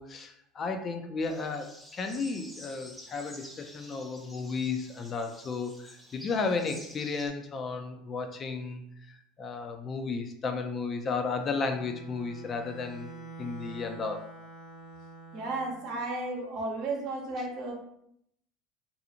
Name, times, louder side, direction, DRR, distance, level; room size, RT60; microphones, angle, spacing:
voice 1, 0.0-13.1 13.4-14.3, left 4 dB, 35° left, 6 dB, 0.4 m, -34 dB
sound 1, 1.2-7.3, equal, 5° left, 0.6 m, -50 dB
Bowed string instrument, 11.3-15.8, right 3 dB, 65° left, 0.7 m, -47 dB
voice 2, 15.3-17.7, right 2 dB, 60° right, 0 dB, 0.8 m, -33 dB
2.5 x 2.4 x 2.8 m, 0.73 s
hypercardioid pair, 75°, 0 cm